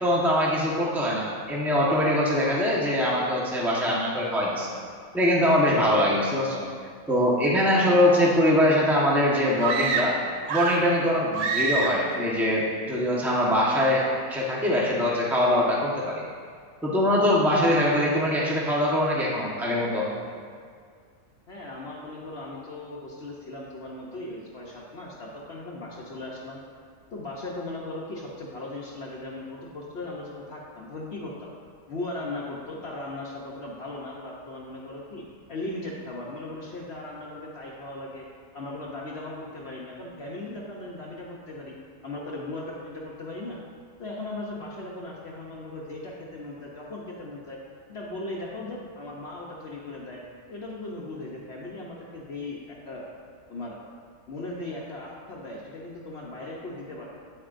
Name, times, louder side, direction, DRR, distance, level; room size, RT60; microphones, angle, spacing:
voice 1, 0.0-4.7 5.1-6.6 7.1-10.1 10.5-16.2 16.8-20.1, left 1 dB, ahead, -5 dB, 1.0 m, -23 dB
sound 1, 9.6-10.9 11.3-12.1, right 4 dB, 80° right, 1.1 m, -27 dB
voice 2, 21.5-26.6 27.1-31.5 31.9-35.2 35.5-38.3 38.5-41.7 42.0-43.6 44.0-47.6 47.9-50.2 50.5-53.0 53.5-53.8 54.3-57.1, left 2 dB, 50° left, -4 dB, 1.0 m, -37 dB
8.9 x 8.7 x 2.5 m, 2.1 s
omnidirectional pair, 1.5 m